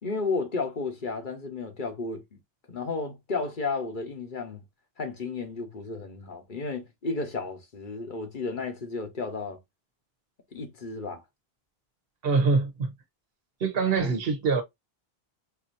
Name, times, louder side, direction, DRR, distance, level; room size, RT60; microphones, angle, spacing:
voice 1, 0.0-2.2 2.7-4.6 5.0-9.6 10.5-11.2 14.0-14.1, left 4 dB, 55° left, 1.2 m, -33 dB
voice 2, 12.2-12.9 13.6-14.6, right 4 dB, 65° right, 1.2 m, -24 dB
4.6 x 2.8 x 2.6 m
omnidirectional pair, 1.0 m